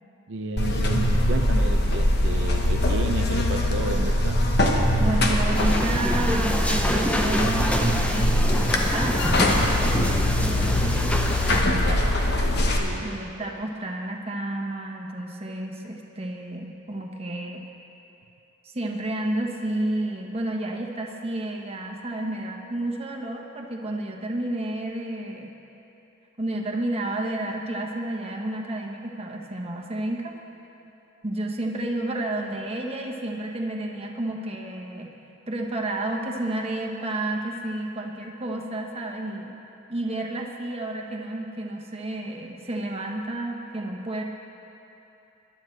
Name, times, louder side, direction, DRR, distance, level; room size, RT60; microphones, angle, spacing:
voice 1, 0.3-4.5 11.8-12.2 12.7-13.5, right 2 dB, 65° right, 2 dB, 0.6 m, -33 dB
Buzz, 0.6-12.8, left 1 dB, 55° left, 1.2 m, -22 dB
voice 2, 5.0-8.3 8.8-11.2 11.5-11.9 13.0-17.7 18.7-25.5 26.4-30.3 31.2-35.1 35.5-39.6 39.9-44.2, right 1 dB, 30° right, 0 dB, 1.2 m, -31 dB
sound 1, 5.5-11.6, equal, 5° left, 0.7 m, -27 dB
20.5 x 11.5 x 3.3 m, 3.0 s
head